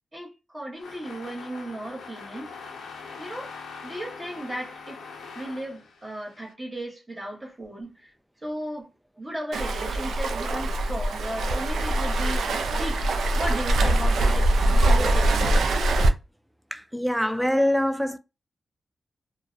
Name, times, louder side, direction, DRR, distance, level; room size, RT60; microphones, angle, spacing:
voice 1, 0.1-2.5 3.2-3.5 3.8-5.0 5.3-8.1 8.4-8.9 9.2-12.5 12.7-15.5, right 1 dB, 30° right, 1.0 m, -35 dB
sound 1, 0.8-6.5, left 4 dB, 85° left, 0.5 m, -42 dB
Waves surf, 9.5-16.1, right 1 dB, 85° right, 0.3 m, -23 dB
voice 2, 16.7-18.2, left 1 dB, 5° right, 0.4 m, -24 dB
2.4 x 2.0 x 2.4 m
cardioid pair, 50°, 0 cm